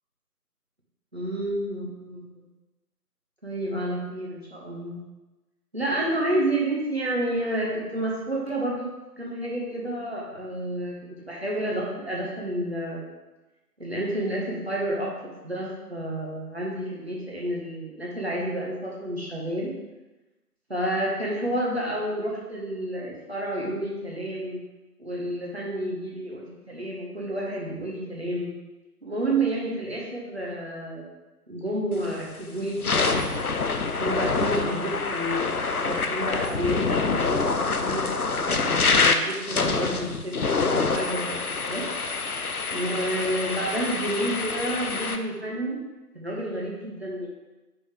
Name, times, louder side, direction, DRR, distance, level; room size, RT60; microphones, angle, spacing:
voice 1, 1.1-2.4 3.4-5.0 5.7-8.9 9.2-13.1 13.8-15.1 15.4-19.7 20.7-24.6 25.0-28.5 29.0-31.1 31.5-33.5 33.9-40.4 40.6-41.3 41.7-41.8 42.7-45.8 46.1-47.3, right 1 dB, 40° right, -4 dB, 1.3 m, -30 dB
sound 1, 32.0-32.2 32.7-45.2, left 4 dB, 65° left, 0.6 m, -26 dB
5.5 x 5.1 x 3.6 m, 1.1 s
figure-of-eight pair, 170°, 47 cm